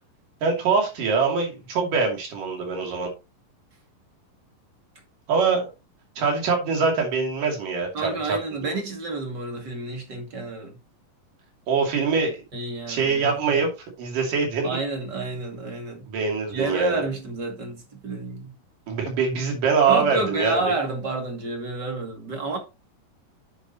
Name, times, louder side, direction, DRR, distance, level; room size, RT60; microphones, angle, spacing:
voice 1, 0.4-3.1 5.3-5.7 6.2-8.7 11.7-12.4 12.9-13.7 14.0-14.7 16.1-17.0 18.9-20.5, right 5 dB, 70° right, 4.3 m, -23 dB
voice 2, 7.9-10.8 12.5-13.6 14.6-16.1 16.5-18.5 19.9-22.6, right 3 dB, 35° right, 2.5 m, -29 dB
9.9 x 7.6 x 2.9 m
omnidirectional pair, 3.9 m